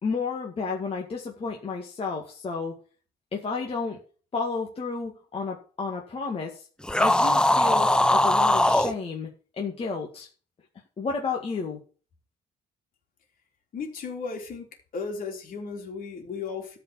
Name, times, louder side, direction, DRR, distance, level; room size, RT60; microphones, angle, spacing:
voice 1, 0.0-2.8 3.3-4.0 4.3-6.7 7.0-10.3 11.0-11.8, left 4 dB, 35° left, 0 dB, 2.0 m, -32 dB
sound 1, 6.8-8.9, left 1 dB, 5° left, 0.5 m, -20 dB
voice 2, 13.7-14.7 14.9-16.8, left 5 dB, 60° left, 2 dB, 3.7 m, -35 dB
13.0 x 5.0 x 7.1 m, 0.38 s
cardioid pair, 125°, 16 cm